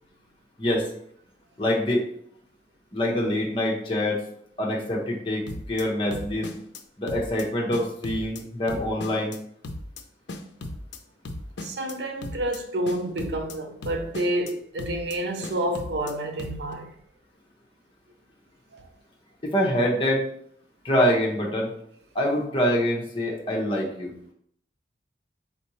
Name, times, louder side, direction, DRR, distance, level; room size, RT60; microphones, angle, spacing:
voice 1, 1.6-2.0 2.9-4.2 4.6-5.4 5.7-6.5 7.0-9.3 19.4-20.2 20.8-21.7 22.1-24.1, equal, 30° left, 0.9 m, -25 dB
sound 1, 5.5-5.8 6.1-6.8 7.1-7.4 7.7-8.4 8.7-9.4 9.6-10.0 10.3-11.0 11.3-11.9 12.2-12.6 12.9-13.6 13.8-14.5 14.8-15.2 15.4-16.1 16.4-16.7, left 2 dB, 75° left, 0.5 m, -36 dB
voice 2, 11.6-16.9 18.7-18.9, right 1 dB, 70° right, 0.6 m, -29 dB
4.2 x 3.6 x 3.1 m
head